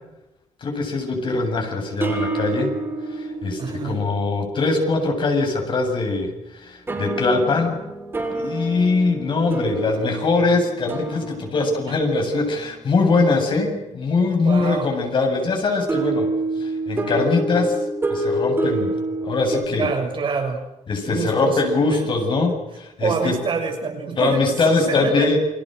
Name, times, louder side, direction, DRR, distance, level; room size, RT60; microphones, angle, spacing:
voice 1, 0.6-2.7 3.1-7.8 8.3-16.3 16.6-17.8 18.1-19.0 19.2-19.9 20.9-23.4 24.2-25.4, left 3 dB, 45° left, 3 dB, 7.8 m, -22 dB
sound 1, 1.3-5.1 6.9-13.1 15.9-19.7, right 2 dB, 20° right, 7.0 m, -28 dB
voice 2, 3.6-4.0 14.4-14.9 19.7-20.6 21.1-21.6 21.9-22.0 23.0-25.3, right 5 dB, 45° right, 4 dB, 6.8 m, -26 dB
29.5 x 26.5 x 6.6 m, 0.96 s
wide cardioid pair, 160°, 12 cm